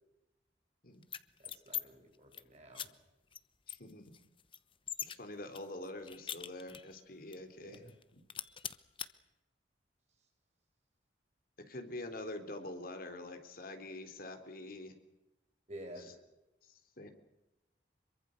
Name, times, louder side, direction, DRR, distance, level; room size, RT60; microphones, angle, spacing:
sound 1, 1.0-1.8 2.1-2.4 2.7-2.9 3.3-3.4 3.7-5.2 5.5-7.0 7.3-7.4 7.7-8.0 8.3-9.1, left 9 dB, 30° left, 1.0 m, -42 dB
voice 1, 1.4-2.9 7.6-7.9 15.7-16.1, right 1 dB, 40° right, 2 dB, 7.9 m, -50 dB
voice 2, 3.7-4.1 5.0-7.9 8.1-8.2 11.7-15.0 16.0-16.1 16.6-17.1, left 1 dB, 50° left, 7 dB, 3.7 m, -46 dB
26.0 x 23.5 x 6.6 m, 0.97 s
head